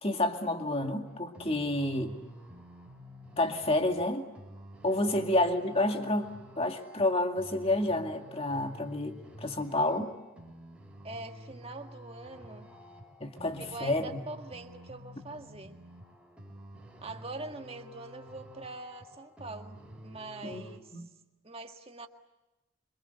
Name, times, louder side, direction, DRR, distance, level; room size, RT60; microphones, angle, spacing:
voice 1, 0.0-2.1 3.4-4.3 4.8-10.1 13.2-14.2 20.4-20.6 20.9-21.1, left 1 dB, 25° left, 5 dB, 2.2 m, -29 dB
sound 1, 1.1-20.8, equal, 5° right, 4.8 m, -50 dB
voice 2, 11.0-12.7 13.6-15.8 17.0-20.9 21.4-22.1, right 2 dB, 25° right, 5 dB, 1.7 m, -43 dB
27.0 x 25.5 x 8.2 m, 1.0 s
head